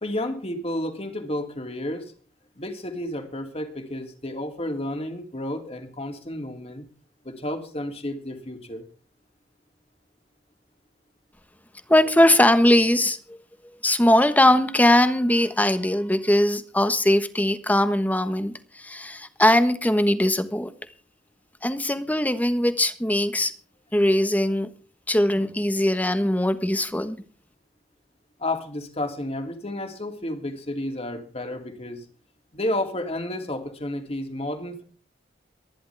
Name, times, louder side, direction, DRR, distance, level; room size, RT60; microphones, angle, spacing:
voice 1, 0.0-2.1 2.6-6.9 7.2-8.9 28.4-32.1 32.5-34.8, left 1 dB, 35° left, 2.8 m, -31 dB
voice 2, 11.9-13.4 13.8-20.7 21.6-23.5 23.9-24.7 25.1-27.2, left 1 dB, 10° left, 1.3 m, -20 dB
23.5 x 11.0 x 3.5 m
head